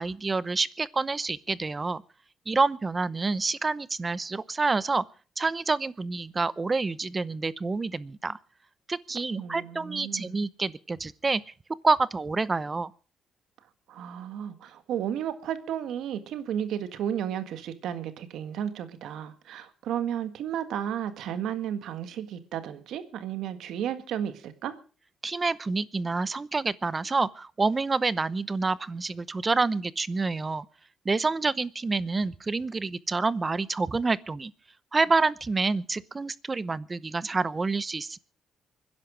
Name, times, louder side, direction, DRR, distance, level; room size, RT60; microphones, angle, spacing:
voice 1, 0.0-2.0 2.5-5.0 5.4-8.4 8.9-11.5 11.8-12.9 25.2-30.7 31.0-34.5 34.9-38.2, right 3 dB, 25° right, 18 dB, 0.8 m, -28 dB
voice 2, 9.4-10.4 13.9-24.8, right 9 dB, 80° right, 10 dB, 1.7 m, -33 dB
24.5 x 10.5 x 5.0 m, 0.38 s
cardioid pair, 90°, 0 cm